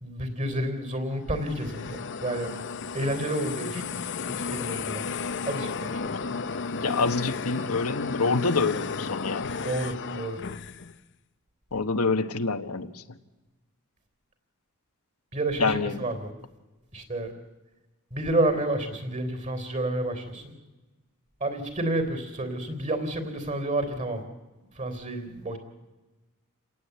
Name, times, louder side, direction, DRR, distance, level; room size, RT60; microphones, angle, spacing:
voice 1, 0.0-2.5 2.9-3.9 4.4-5.0 5.5-6.4 9.6-10.4 15.3-16.3 16.9-17.3 18.1-20.5 21.4-24.2 24.8-25.6, right 1 dB, 35° right, 3.6 m, -30 dB
sound 1, 1.2-11.0, left 5 dB, 55° left, 0.8 m, -33 dB
voice 2, 6.8-9.5 11.7-13.0 15.6-16.0, left 4 dB, 80° left, 1.3 m, -27 dB
28.5 x 18.0 x 8.3 m
head